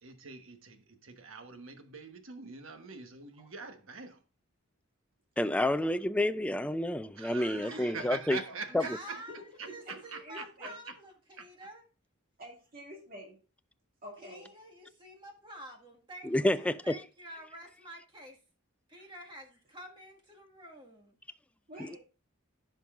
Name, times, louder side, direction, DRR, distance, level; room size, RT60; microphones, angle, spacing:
voice 1, 0.0-4.2 7.1-9.3 9.6-11.0 11.4-11.5, right 4 dB, 65° right, 1.2 m, -44 dB
voice 2, 5.4-8.4 16.2-17.0 21.9-22.0, left 1 dB, 5° left, 0.3 m, -29 dB
voice 3, 7.3-8.1 9.7-9.9 10.2-10.8 12.4-13.4 14.0-14.5 18.9-19.1 21.7-22.0, equal, 45° right, 2.3 m, -48 dB
voice 4, 8.7-11.1 11.4-11.8 14.2-18.4 18.9-21.2, equal, 25° right, 1.8 m, -49 dB
15.0 x 5.3 x 2.5 m
head